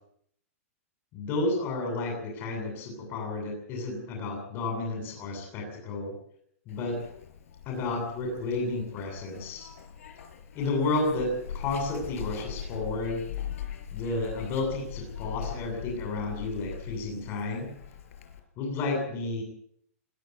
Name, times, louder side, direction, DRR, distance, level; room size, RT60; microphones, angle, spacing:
voice 1, 1.1-6.1 6.7-7.0 7.7-9.7 10.5-13.2 13.9-17.7 18.6-19.4, left 2 dB, 30° left, 0 dB, 7.6 m, -31 dB
Zipper (clothing), 6.7-18.4, left 8 dB, 70° left, 4.6 m, -41 dB
21.0 x 13.5 x 9.6 m, 0.68 s
hypercardioid pair, 155°, 8 cm